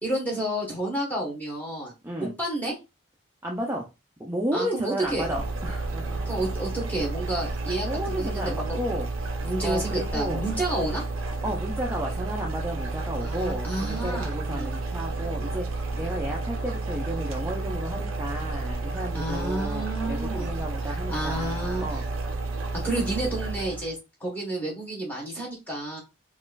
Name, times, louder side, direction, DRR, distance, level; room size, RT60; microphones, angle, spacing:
voice 1, 0.0-1.9 2.2-2.7 4.5-5.3 6.2-8.8 9.4-11.0 13.2-14.7 19.1-20.5 21.1-21.8 22.7-23.9 24.2-26.0, right 1 dB, 10° left, -2 dB, 1.1 m, -30 dB
voice 2, 2.0-2.3 3.4-3.9 4.2-6.4 7.8-9.3 9.6-10.4 11.4-22.1, equal, 10° right, -2 dB, 0.4 m, -33 dB
sound 1, 5.0-23.9, right 3 dB, 90° right, 0.6 m, -31 dB
4.0 x 2.5 x 2.3 m, 0.26 s
head